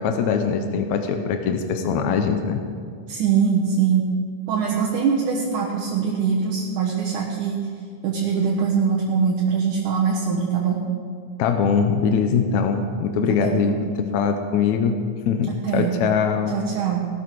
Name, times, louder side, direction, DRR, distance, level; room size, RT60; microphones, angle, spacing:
voice 1, 0.0-2.6 11.4-13.8 14.1-14.9 15.3-16.6, left 6 dB, 70° left, 5 dB, 1.9 m, -22 dB
voice 2, 3.1-4.1 4.5-7.6 8.0-10.8 13.4-13.8 15.5-15.9 16.5-17.0, right 6 dB, 70° right, -3 dB, 2.7 m, -22 dB
18.0 x 12.5 x 4.7 m, 2.1 s
omnidirectional pair, 3.8 m